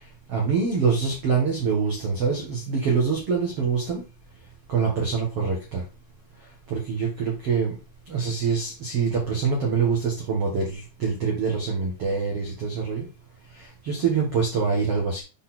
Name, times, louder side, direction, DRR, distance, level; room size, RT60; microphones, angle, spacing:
voice 1, 0.3-4.0 4.7-5.8 6.7-7.7 8.1-13.1 13.6-15.2, right 5 dB, 90° right, -1 dB, 1.3 m, -25 dB
8.2 x 4.3 x 3.9 m, 0.30 s
omnidirectional pair, 5.5 m